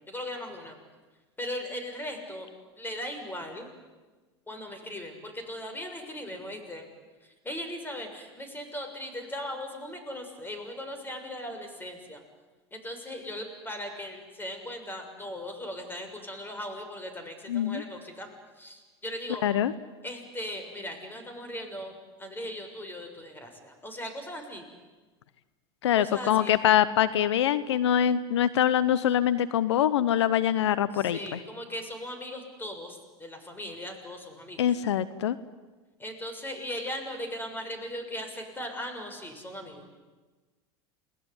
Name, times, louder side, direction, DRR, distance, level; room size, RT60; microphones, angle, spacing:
voice 1, 0.1-0.8 1.4-2.5 2.8-3.7 4.5-6.9 7.4-12.2 12.7-18.3 18.6-19.4 20.0-21.9 22.2-24.7 25.9-26.6 30.9-34.6 36.0-39.8, left 1 dB, 15° left, 5 dB, 6.6 m, -38 dB
voice 2, 17.5-17.8 19.4-19.7 25.8-31.4 34.6-35.4, left 10 dB, 85° left, 15 dB, 0.9 m, -24 dB
29.0 x 19.5 x 9.8 m, 1.3 s
hypercardioid pair, 95°, 14 cm